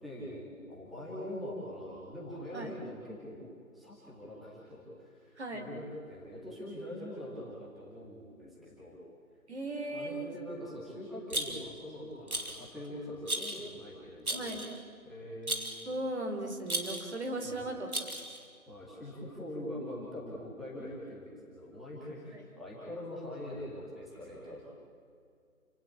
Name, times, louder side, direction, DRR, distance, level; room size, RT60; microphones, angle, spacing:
voice 1, 0.0-3.4 3.7-9.0 9.9-14.6 15.0-15.8 17.4-17.8 18.7-24.7, left 1 dB, ahead, -9 dB, 2.2 m, -43 dB
voice 2, 5.4-5.7 9.5-10.3 14.3-14.7 15.9-17.9 22.3-22.5, right 1 dB, 50° right, 4 dB, 4.1 m, -37 dB
Rattle, 11.3-11.8 12.3-12.7 13.3-13.7 14.3-14.8 15.5-15.9 16.7-17.1 17.9-18.4, right 1 dB, 90° right, 3.5 m, -35 dB
29.0 x 17.5 x 8.7 m, 2.2 s
figure-of-eight pair, 155°, 43 cm